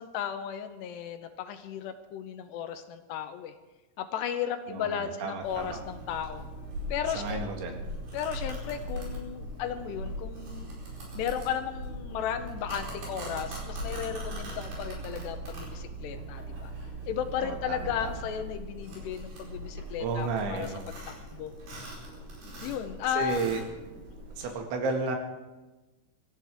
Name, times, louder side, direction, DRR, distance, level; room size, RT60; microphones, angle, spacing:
voice 1, 0.0-3.5 4.0-6.4 6.9-7.5 8.1-10.7 11.1-16.7 17.1-20.7 21.1-21.5 22.6-23.4, left 9 dB, 80° left, 8 dB, 2.7 m, -34 dB
voice 2, 4.7-5.8 7.2-7.8 17.4-18.1 20.0-20.8 23.1-23.6 24.4-25.2, right 4 dB, 85° right, 3 dB, 4.2 m, -32 dB
Domestic sounds home sounds, 5.4-24.5, right 1 dB, 60° right, 6.4 m, -40 dB
24.5 x 14.5 x 3.5 m, 1.1 s
omnidirectional pair, 5.2 m